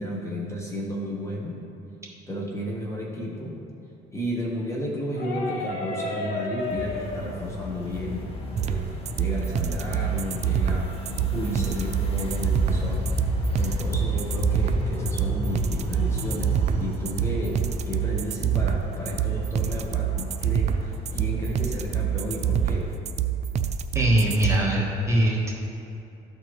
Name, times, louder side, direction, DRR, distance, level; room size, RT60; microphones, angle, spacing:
voice 1, 0.0-1.6 2.3-3.6 4.1-8.2 8.6-8.9 9.2-10.9 11.3-13.1 13.6-16.5 16.8-22.9, equal, 15° left, -3 dB, 1.2 m, -32 dB
sound 1, 5.1-10.7, left 3 dB, 65° left, 1.5 m, -36 dB
sound 2, 6.6-22.9, left 1 dB, 35° left, 1.4 m, -33 dB
sound 3, 8.6-24.6, right 9 dB, 40° right, 0.4 m, -26 dB
voice 2, 23.9-25.6, right 1 dB, 15° right, -3 dB, 1.4 m, -22 dB
13.0 x 4.3 x 3.1 m, 2.8 s
cardioid pair, 110°, 17 cm